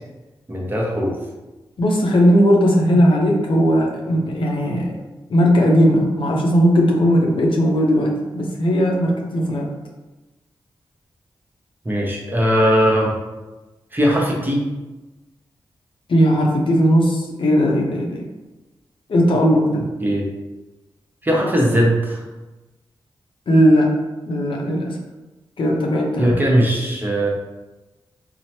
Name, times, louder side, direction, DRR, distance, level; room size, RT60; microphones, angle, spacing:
voice 1, 0.5-1.2 11.8-13.1 13.9-14.6 20.0-20.2 21.2-22.2 26.2-27.3, equal, 20° right, -2 dB, 0.8 m, -19 dB
voice 2, 1.8-4.9 5.3-9.7 16.1-18.2 19.1-19.8 23.5-23.9 24.3-25.0 25.6-26.4, equal, 65° left, -1 dB, 0.6 m, -17 dB
3.0 x 2.0 x 2.8 m, 1.1 s
cardioid pair, 45°, 9 cm